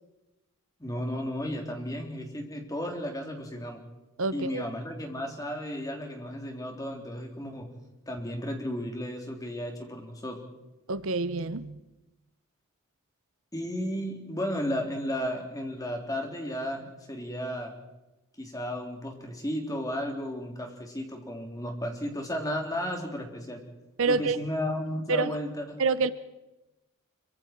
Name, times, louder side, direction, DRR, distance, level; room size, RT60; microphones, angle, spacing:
voice 1, 0.8-3.8 4.3-7.7 8.1-10.4 13.5-17.7 18.4-23.6 24.0-25.8, equal, 15° left, 2 dB, 3.4 m, -34 dB
voice 2, 4.2-4.6 10.9-11.8 24.0-24.4 25.1-25.3 25.8-26.1, right 4 dB, 60° right, 14 dB, 0.8 m, -27 dB
25.5 x 24.5 x 4.5 m, 1.0 s
head